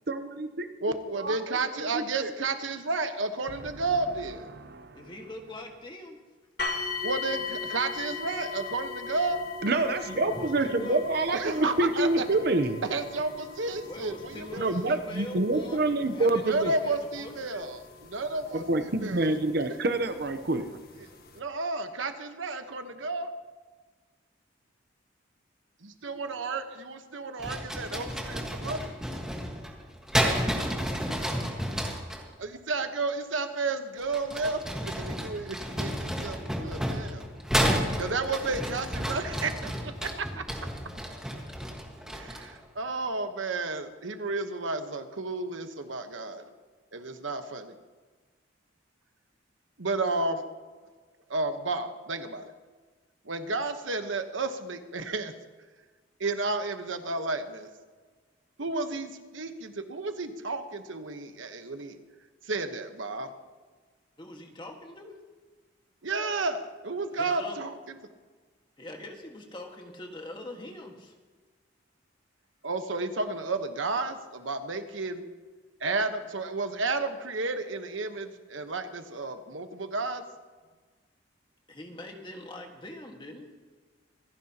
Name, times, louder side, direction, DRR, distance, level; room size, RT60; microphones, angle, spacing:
voice 1, 0.1-0.6 1.2-1.4 1.9-2.3 4.5-5.0 9.6-12.8 14.6-16.7 18.5-20.7, right 2 dB, 55° right, 9 dB, 0.8 m, -27 dB
voice 2, 0.8-4.5 7.0-9.4 11.3-12.2 12.8-14.9 16.4-17.8 18.1-18.6 19.0-19.3 21.0-21.1 21.3-23.3 25.8-28.9 32.4-37.3 38.0-40.4 42.1-46.5 46.9-47.7 49.8-50.4 51.3-52.5 53.2-55.3 56.2-57.7 58.6-62.0 62.4-63.3 66.0-68.0 72.6-75.2 75.8-80.2, right 3 dB, 80° right, 8 dB, 1.1 m, -32 dB
voice 3, 4.9-6.2 10.1-11.1 11.8-11.9 13.8-17.6 64.2-65.2 67.1-67.6 68.8-71.2 81.7-83.5, left 1 dB, 25° left, 2 dB, 1.6 m, -43 dB
sound 1, 6.6-19.5 20.3-20.4 21.0-21.1, left 4 dB, 50° left, 1.6 m, -39 dB
sound 2, 27.4-32.2 34.0-42.6, equal, 5° right, 1.5 m, -31 dB
26.0 x 10.5 x 2.9 m, 1.4 s
head